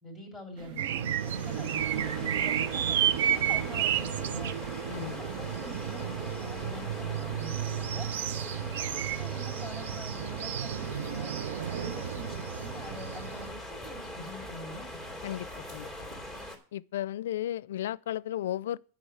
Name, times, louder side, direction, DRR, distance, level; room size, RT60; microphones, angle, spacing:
voice 1, 0.0-4.6 4.9-8.1 8.5-11.3 11.7-15.0, left 1 dB, 5° right, 3.1 m, -45 dB
sound 1, 0.6-7.5, right 8 dB, 50° right, 1.1 m, -48 dB
sound 2, 0.8-13.5, right 10 dB, 85° right, 0.5 m, -32 dB
sound 3, 0.9-16.6, left 1 dB, 20° right, 2.8 m, -42 dB
voice 2, 4.9-5.2 15.2-16.1 16.7-18.8, left 12 dB, 85° left, 0.4 m, -34 dB
9.9 x 5.9 x 7.9 m
supercardioid pair, 155°, 0 cm